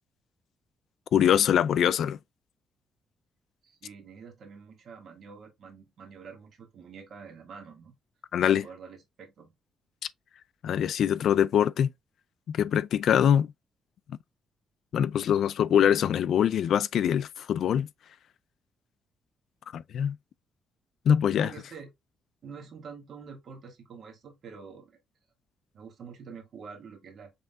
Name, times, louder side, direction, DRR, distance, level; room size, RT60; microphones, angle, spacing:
voice 1, 1.1-2.2 8.3-8.6 10.6-11.9 12.5-13.5 14.9-17.9 19.7-20.2 21.1-21.5, left 9 dB, 65° left, 0.3 m, -23 dB
voice 2, 3.6-7.9 8.4-9.5 21.3-21.9 22.4-25.0 25.7-27.3, right 5 dB, 55° right, 1.6 m, -46 dB
5.6 x 3.6 x 2.2 m
cardioid pair, 125°, 0 cm